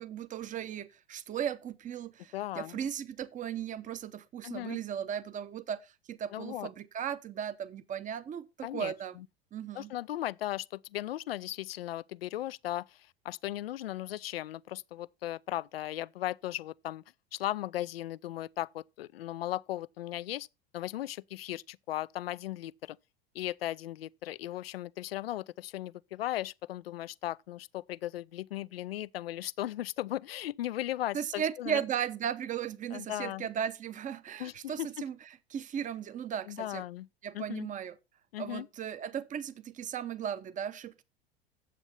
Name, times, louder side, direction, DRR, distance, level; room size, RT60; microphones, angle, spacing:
voice 1, 0.0-9.1 9.5-9.9 31.1-35.2 35.5-36.8 37.2-37.9 38.4-41.0, right 9 dB, 25° right, 0.8 m, -36 dB
voice 2, 2.3-2.8 4.4-4.8 6.3-6.7 8.6-9.3 9.7-17.0 17.3-20.5 20.7-23.0 23.3-31.8 32.9-33.5 34.4-34.9 36.5-37.1 37.3-37.7 38.3-38.7, left 14 dB, 75° left, 0.5 m, -37 dB
9.2 x 7.9 x 4.2 m
figure-of-eight pair, 80°, 30 cm